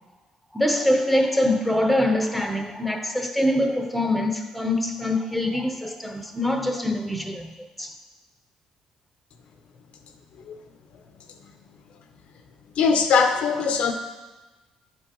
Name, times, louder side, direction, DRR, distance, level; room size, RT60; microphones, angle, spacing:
voice 1, 0.5-7.5 7.8-7.9, left 1 dB, ahead, 0.8 m, -24 dB
voice 2, 12.8-13.9, left 5 dB, 70° left, 0.6 m, -20 dB
10.5 x 4.5 x 3.0 m
cardioid pair, 90°, 2 cm